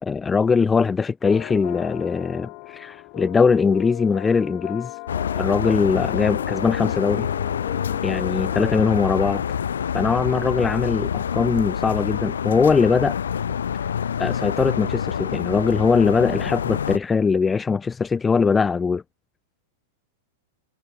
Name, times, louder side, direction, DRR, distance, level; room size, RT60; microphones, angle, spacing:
voice 1, 0.0-4.9 5.4-7.3 8.0-9.6 9.9-13.2 14.2-19.0, left 5 dB, 15° left, 0.7 m, -21 dB
sound 1, 1.2-8.8, left 37 dB, 45° left, 3.4 m, -36 dB
sound 2, 5.1-17.0, left 8 dB, 75° left, 1.0 m, -27 dB
figure-of-eight pair, 100°, 0 cm